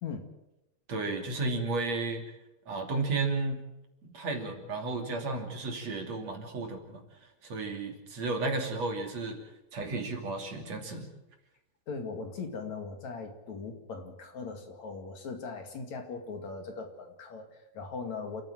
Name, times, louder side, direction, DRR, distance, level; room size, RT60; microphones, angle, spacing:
voice 1, 0.9-2.2 2.7-3.6 4.0-7.0 7.4-9.4 9.7-11.1, right 3 dB, 50° right, 4 dB, 3.8 m, -33 dB
voice 2, 11.9-18.4, left 4 dB, 55° left, 6 dB, 3.3 m, -39 dB
29.0 x 14.5 x 7.7 m, 0.94 s
omnidirectional pair, 4.1 m